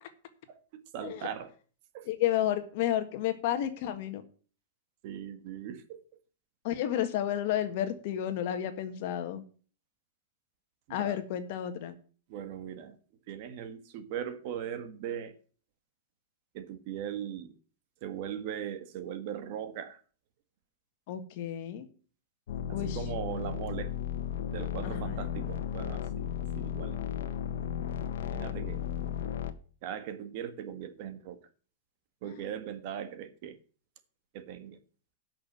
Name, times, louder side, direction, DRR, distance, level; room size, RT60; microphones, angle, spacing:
voice 1, 0.5-1.5 1.9-2.1 5.0-5.8 10.9-11.2 12.3-13.0 13.3-15.3 16.5-17.5 18.0-20.0 22.8-23.9 24.5-26.3 26.5-27.0 28.2-28.8 29.8-31.4 32.2-33.6 34.3-34.8, right 9 dB, 40° right, 1.5 m, -39 dB
voice 2, 2.0-4.2 6.6-9.4 10.9-11.9 21.1-21.8 22.7-23.0 24.8-25.2 32.2-32.5, left 11 dB, 45° left, 1.6 m, -31 dB
sound 1, 22.5-29.5, left 9 dB, 75° left, 1.3 m, -35 dB
11.5 x 6.2 x 7.4 m
supercardioid pair, 165°, 0 cm